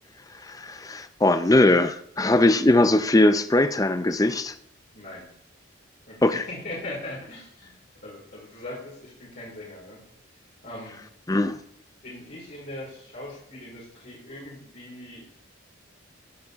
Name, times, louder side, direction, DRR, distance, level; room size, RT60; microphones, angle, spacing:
voice 1, 0.4-4.5 6.2-6.5 11.3-11.6, left 2 dB, 15° left, 0.5 m, -20 dB
voice 2, 4.9-5.3 6.0-7.7 8.0-10.0 10.6-11.0 12.0-15.2, left 1 dB, 50° left, 4.7 m, -40 dB
15.5 x 9.7 x 3.6 m
head